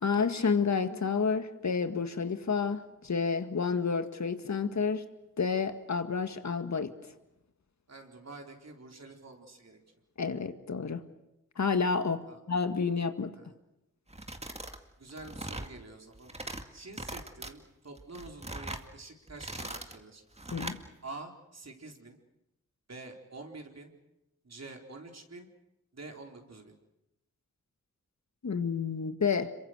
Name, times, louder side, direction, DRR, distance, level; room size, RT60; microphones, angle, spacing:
voice 1, 0.0-5.1 5.4-6.9 10.2-11.1 11.6-13.3 20.5-20.8 28.4-29.5, left 5 dB, 60° left, 9 dB, 1.9 m, -30 dB
voice 2, 7.9-9.8 12.3-12.4 13.4-13.5 15.0-16.3 16.7-20.2 21.0-22.2 22.9-23.9 24.4-25.5 25.9-26.8, right 3 dB, 50° right, 2 dB, 4.1 m, -47 dB
Foley Spiral Notebook Touch, 14.1-14.8 15.1-15.7 16.1-16.6 16.9-17.5 18.0-18.9 19.3-20.0 20.4-20.8, right 1 dB, 20° right, 2.1 m, -40 dB
26.5 x 23.5 x 6.5 m, 0.89 s
cardioid pair, 40°, 32 cm